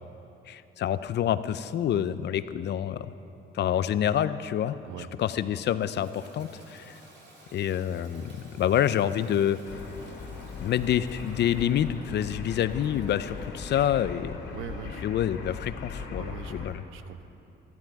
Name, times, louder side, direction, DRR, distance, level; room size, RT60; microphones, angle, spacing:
voice 1, 0.5-3.1 3.5-4.8 5.2-7.0 7.5-9.6 10.6-14.4 15.0-16.8, left 10 dB, 60° left, 14 dB, 0.5 m, -27 dB
Toilet flush, 5.4-14.0, right 2 dB, 60° right, 2.7 m, -55 dB
sound 1, 9.6-16.7, left 4 dB, 75° left, 2.4 m, -39 dB
voice 2, 14.5-15.0 16.2-17.2, right 9 dB, 85° right, 10 dB, 0.7 m, -42 dB
13.5 x 12.0 x 4.7 m, 2.9 s
cardioid pair, 90°, 20 cm